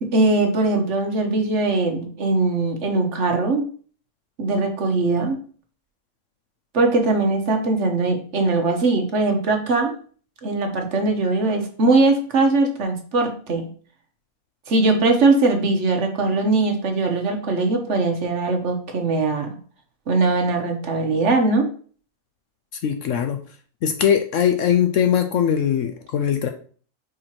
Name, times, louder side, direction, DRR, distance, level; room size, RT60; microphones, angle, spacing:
voice 1, 0.0-3.6 4.4-5.4 6.7-9.9 10.4-13.7 14.7-19.5 20.1-21.7, right 3 dB, 55° right, 4 dB, 1.2 m, -20 dB
voice 2, 22.8-23.4 23.8-26.5, left 8 dB, 65° left, 7 dB, 0.8 m, -20 dB
4.8 x 4.5 x 4.4 m, 0.44 s
omnidirectional pair, 1.6 m